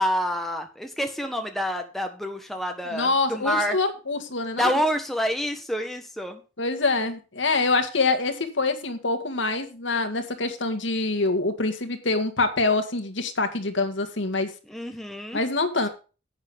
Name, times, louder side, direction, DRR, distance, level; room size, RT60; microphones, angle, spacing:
voice 1, 0.0-3.8 4.6-6.4 14.7-15.4, equal, ahead, 4 dB, 1.4 m, -27 dB
voice 2, 2.9-4.8 6.6-14.5 15.3-15.9, left 3 dB, 70° left, 7 dB, 1.9 m, -25 dB
11.5 x 8.7 x 3.6 m, 0.33 s
head